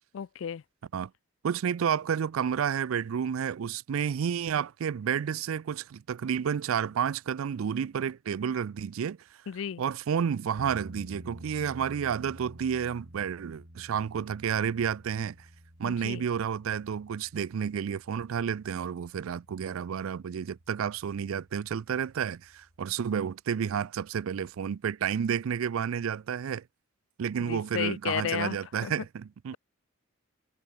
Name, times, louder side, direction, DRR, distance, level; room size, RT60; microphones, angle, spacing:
voice 1, 0.1-0.6 9.5-9.8 15.9-16.2 27.4-28.6 28.8-28.9, left 8 dB, 65° left, 0.4 m, -33 dB
voice 2, 1.4-9.2 9.8-15.4 15.8-26.6 27.2-29.6, right 7 dB, 75° right, 0.4 m, -30 dB
sound 1, 10.6-22.9, equal, 55° right, 5.8 m, -51 dB
head